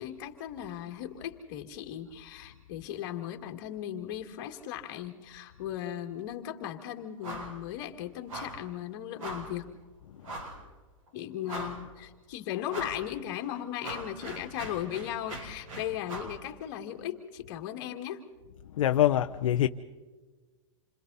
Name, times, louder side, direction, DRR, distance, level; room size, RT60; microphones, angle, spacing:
voice 1, 0.0-9.7 11.1-18.2, left 11 dB, 40° left, 2.2 m, -37 dB
sound 1, 7.2-7.6 7.8-8.0 8.3-8.6 9.2-9.6 10.2-10.6 11.1-11.2 11.4-12.0 12.7-13.0 13.4-16.4, right 1 dB, 80° right, 6.9 m, -40 dB
voice 2, 18.8-19.7, left 12 dB, 70° left, 0.8 m, -24 dB
28.5 x 25.5 x 4.1 m
supercardioid pair, 170°, 17 cm